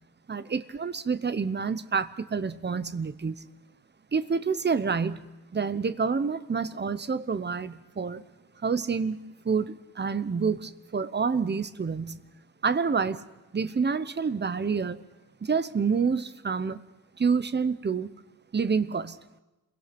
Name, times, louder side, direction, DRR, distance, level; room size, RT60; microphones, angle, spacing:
voice 1, 0.3-3.4 4.1-8.2 8.6-12.2 12.6-13.2 13.5-15.0 15.4-16.8 17.2-18.1 18.5-19.2, right 5 dB, 25° right, 14 dB, 0.8 m, -28 dB
28.5 x 22.5 x 6.0 m, 1.0 s
wide cardioid pair, 175°, 42 cm